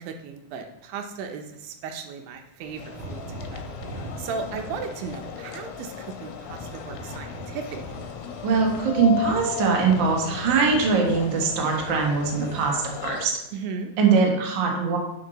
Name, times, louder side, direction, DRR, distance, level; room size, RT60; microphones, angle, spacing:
voice 1, 0.0-3.6 3.9-8.0 13.5-13.9, right 5 dB, 80° right, 5 dB, 2.4 m, -36 dB
sound 1, 2.6-12.7, right 1 dB, 30° right, 2.7 m, -41 dB
sound 2, 2.8-13.3, left 10 dB, 85° left, 2.4 m, -37 dB
voice 2, 8.4-13.4 14.0-15.0, right 5 dB, 55° right, 0 dB, 1.3 m, -22 dB
9.7 x 5.5 x 3.9 m, 0.87 s
omnidirectional pair, 4.2 m